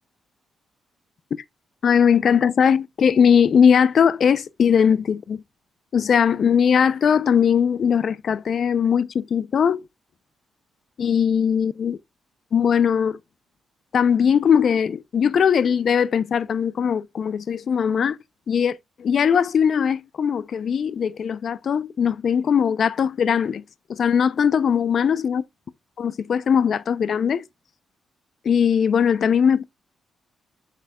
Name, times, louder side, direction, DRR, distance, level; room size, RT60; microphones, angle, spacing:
voice 1, 1.8-5.4 5.9-9.8 11.0-12.0 12.5-13.2 13.9-18.2 18.5-23.6 23.9-25.4 26.0-27.4 28.4-29.6, left 7 dB, 55° left, 0.7 m, -20 dB
8.2 x 6.7 x 2.4 m
cardioid pair, 100°, 0 cm